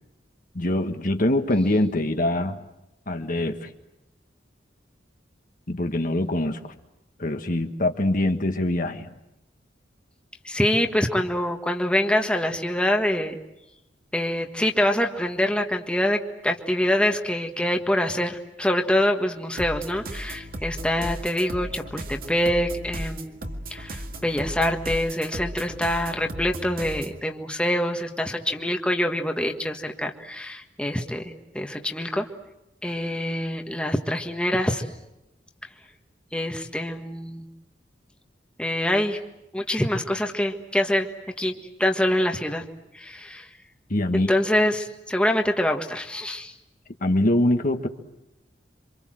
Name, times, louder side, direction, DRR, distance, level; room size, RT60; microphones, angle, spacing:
voice 1, 0.5-2.6 3.1-3.7 5.7-6.8 7.2-9.1 43.9-44.3 47.0-47.9, left 1 dB, 50° left, 6 dB, 1.6 m, -24 dB
voice 2, 10.4-13.4 14.1-32.3 32.8-34.8 36.3-37.4 38.6-39.2 39.5-41.1 41.4-41.5 41.8-42.6 42.9-43.5 44.1-46.5, left 1 dB, 5° left, 3 dB, 1.6 m, -25 dB
sound 1, 19.6-27.2, right 1 dB, 55° right, 2.0 m, -36 dB
28.0 x 25.5 x 7.7 m, 0.90 s
head